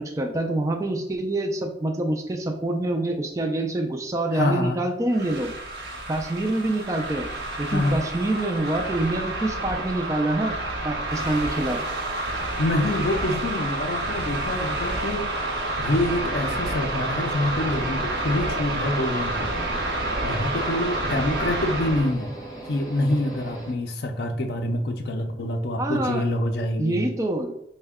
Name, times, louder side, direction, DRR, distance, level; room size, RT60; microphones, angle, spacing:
voice 1, 0.0-5.5 6.1-7.3 7.6-10.5 10.8-11.9 25.8-26.2 26.8-27.5, right 1 dB, 20° right, 3 dB, 0.3 m, -26 dB
voice 2, 4.3-4.8 7.7-8.0 12.6-19.5 20.2-22.3 22.7-27.1, left 1 dB, 60° left, 3 dB, 0.4 m, -26 dB
sound 1, 5.1-22.1, right 2 dB, 65° right, 0.7 m, -29 dB
sound 2, 15.9-23.7, right 2 dB, 20° left, 1.4 m, -39 dB
4.3 x 2.2 x 3.5 m, 0.79 s
head